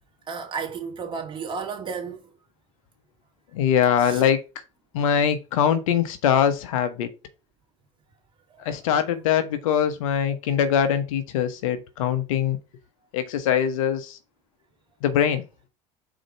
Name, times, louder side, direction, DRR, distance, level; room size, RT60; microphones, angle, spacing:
voice 1, 0.3-2.2 4.0-4.2 8.5-8.8, right 5 dB, 30° right, 2.6 m, -33 dB
voice 2, 3.5-4.4 4.9-7.1 8.6-12.6 13.1-14.2 15.0-15.4, left 8 dB, 75° left, 1.1 m, -22 dB
5.1 x 4.5 x 5.3 m
hypercardioid pair, 95°, 17 cm